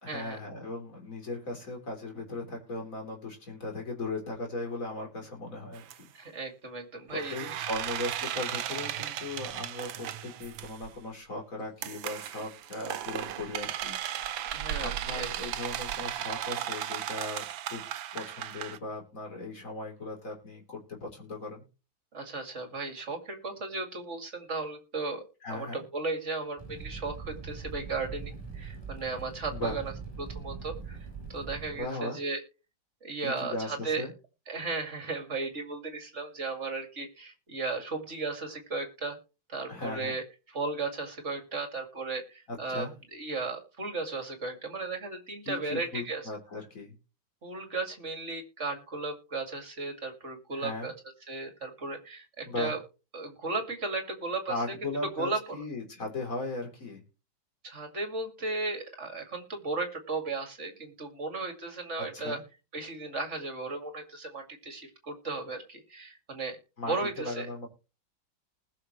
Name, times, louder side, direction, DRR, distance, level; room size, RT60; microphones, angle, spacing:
voice 1, 0.0-6.0 7.1-14.0 14.7-17.8 18.1-21.6 25.4-25.8 29.5-29.8 31.8-32.2 33.2-34.1 39.7-40.2 42.5-42.9 45.4-46.9 50.5-50.9 52.5-52.8 54.5-57.0 62.1-62.4 66.8-67.7, left 2 dB, 40° left, 1 dB, 3.9 m, -38 dB
sound 1, 5.7-5.9 7.1-10.9 11.8-18.8, right 11 dB, 70° right, 1.5 m, -36 dB
voice 2, 6.1-7.6 8.2-8.3 14.5-15.5 22.1-25.2 25.5-29.9 30.2-31.0 31.3-32.4 33.0-34.0 34.5-39.2 39.5-42.9 43.1-46.2 47.4-50.9 51.3-52.8 53.1-54.6 55.2-55.6 57.6-62.4 62.7-66.6 66.9-67.5, right 3 dB, 35° right, 5 dB, 2.5 m, -35 dB
Fire, 26.6-31.8, right 5 dB, 10° right, 4.8 m, -41 dB
20.0 x 6.7 x 3.1 m, 0.31 s
omnidirectional pair, 2.3 m